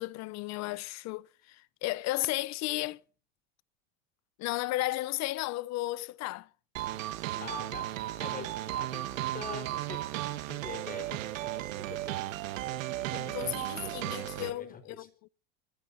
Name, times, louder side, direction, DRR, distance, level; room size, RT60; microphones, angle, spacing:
voice 1, 0.0-3.0 4.4-6.5 13.2-15.3, left 18 dB, 45° left, 0.7 m, -34 dB
sound 1, 6.8-14.5, right 15 dB, 80° right, 1.6 m, -35 dB
voice 2, 7.4-12.4 12.7-13.5 13.8-15.1, left 5 dB, 20° left, 4.4 m, -45 dB
26.0 x 16.0 x 2.7 m
supercardioid pair, 115°, 39 cm